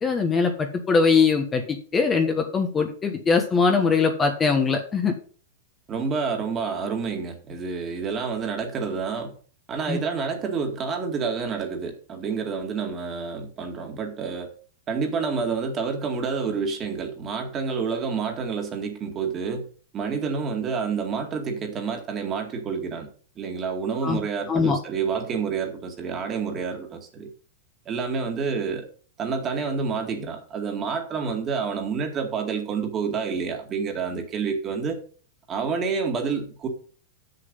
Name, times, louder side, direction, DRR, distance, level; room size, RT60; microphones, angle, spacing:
voice 1, 0.0-5.1 9.9-10.0 24.0-24.2 24.5-24.8, left 5 dB, 20° left, 4 dB, 1.2 m, -22 dB
voice 2, 5.9-9.3 9.7-14.5 14.9-19.6 19.9-23.1 23.4-27.3 27.9-28.9 29.2-35.0 35.5-36.7, right 5 dB, 25° right, 4 dB, 2.1 m, -28 dB
7.6 x 6.8 x 5.4 m, 0.43 s
hypercardioid pair, 135°, 0 cm